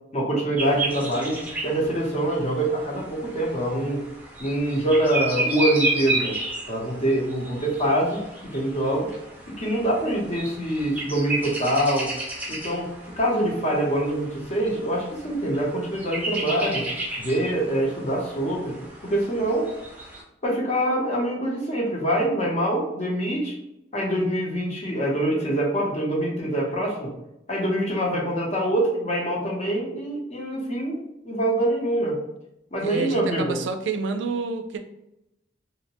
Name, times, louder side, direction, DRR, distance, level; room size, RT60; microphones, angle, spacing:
voice 1, 0.1-4.0 4.4-6.4 6.7-8.2 8.5-9.1 9.6-12.1 12.5-12.9 13.2-16.9 17.2-18.8 19.0-19.7 20.4-23.5 23.9-27.1 27.5-32.2 32.7-33.6, right 1 dB, 40° left, -2 dB, 0.7 m, -25 dB
sound 1, 0.6-20.2, right 2 dB, 10° right, 0.5 m, -33 dB
voice 2, 32.8-34.8, right 4 dB, 80° right, 7 dB, 0.3 m, -28 dB
2.7 x 2.1 x 2.9 m, 0.85 s
head